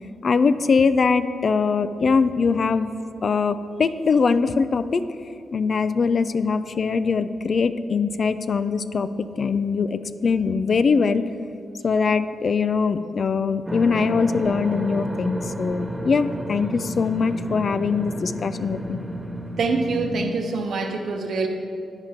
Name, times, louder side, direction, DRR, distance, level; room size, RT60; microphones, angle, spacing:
voice 1, 0.2-2.9 3.2-5.0 5.5-11.2 11.8-19.0, left 5 dB, 55° left, 12 dB, 0.3 m, -22 dB
sound 1, 13.7-20.2, right 1 dB, 15° right, 1.0 m, -32 dB
voice 2, 19.6-21.5, right 3 dB, 70° right, 4 dB, 0.9 m, -25 dB
8.9 x 4.9 x 5.7 m, 2.5 s
cardioid pair, 60°, 0 cm